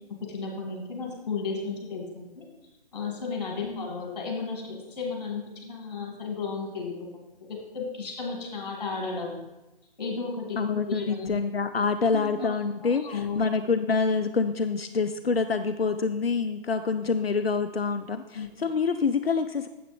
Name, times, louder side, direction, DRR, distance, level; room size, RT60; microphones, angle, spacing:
voice 1, 0.1-2.1 2.4-2.5 2.9-6.9 7.5-9.5 10.0-10.6 10.9-11.3 12.4-12.5 12.8-13.4 18.3-18.5, left 4 dB, 45° left, 0 dB, 2.2 m, -33 dB
voice 2, 10.6-19.7, left 5 dB, 85° left, 8 dB, 0.5 m, -26 dB
7.8 x 7.7 x 3.2 m, 1.0 s
figure-of-eight pair, 140°, 29 cm